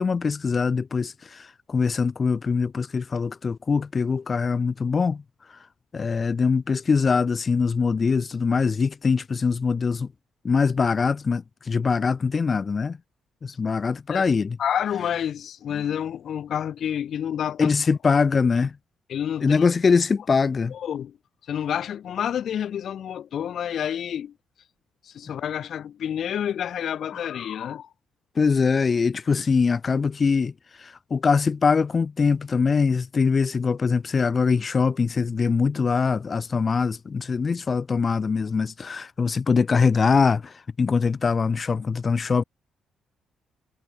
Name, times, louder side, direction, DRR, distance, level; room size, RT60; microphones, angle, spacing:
voice 1, 0.0-5.2 5.9-10.1 10.4-13.0 13.4-14.6 17.6-18.7 19.4-20.7 28.4-30.5 30.8-42.4, left 5 dB, 35° left, 1.4 m, -23 dB
voice 2, 14.6-17.7 19.1-19.7 20.7-21.2 21.5-24.3 25.0-27.9, left 9 dB, 65° left, 1.9 m, -29 dB
cardioid pair, 90°, 0 cm